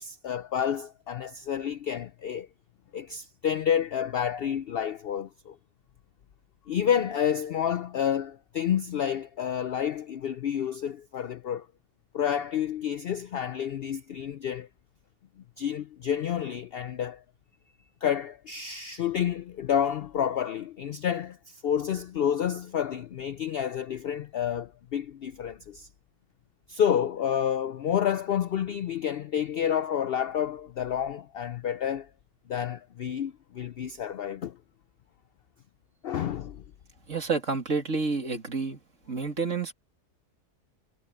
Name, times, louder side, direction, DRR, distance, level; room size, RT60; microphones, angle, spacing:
voice 1, 0.0-2.5 2.9-5.6 6.7-11.7 12.1-14.7 15.6-17.2 18.0-25.9 26.7-32.1 32.5-34.6 36.0-36.6, left 9 dB, 70° left, 0.5 m, -29 dB
voice 2, 37.1-38.8 39.1-39.7, right 4 dB, 55° right, 2.8 m, -29 dB
omnidirectional pair, 1.6 m